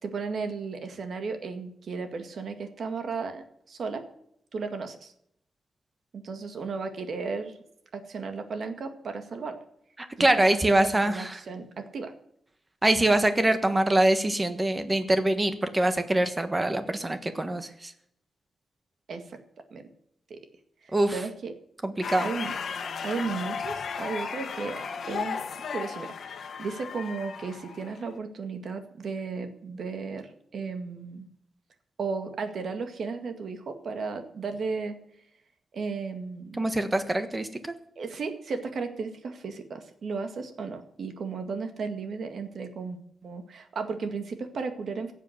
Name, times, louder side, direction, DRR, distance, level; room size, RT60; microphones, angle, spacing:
voice 1, 0.0-4.1 4.5-5.1 6.1-7.5 7.9-9.6 10.2-12.1 19.1-19.4 19.7-19.8 20.3-20.4 20.8-21.5 22.2-22.6 23.0-31.3 32.0-35.0 35.7-36.6 38.0-45.1, right 4 dB, 60° right, 7 dB, 1.9 m, -35 dB
voice 2, 10.0-11.4 12.8-17.9 20.9-21.1 21.8-22.3 36.6-37.7, right 1 dB, 20° right, 9 dB, 1.4 m, -24 dB
sound 1, 22.0-28.2, left 6 dB, 65° left, 1.4 m, -35 dB
17.0 x 7.5 x 8.0 m, 0.72 s
wide cardioid pair, 125°, 0 cm